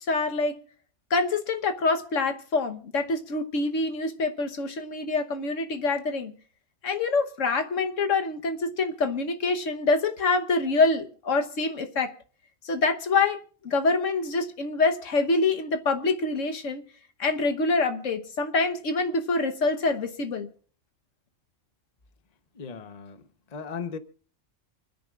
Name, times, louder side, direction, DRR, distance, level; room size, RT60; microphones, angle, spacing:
voice 1, 0.1-0.5 1.1-6.3 6.8-12.1 12.6-16.8 17.2-20.5, left 3 dB, 75° left, 1.5 m, -26 dB
voice 2, 22.5-23.2 23.5-24.0, left 6 dB, 35° left, 1.0 m, -36 dB
29.0 x 10.0 x 2.4 m
omnidirectional pair, 1.3 m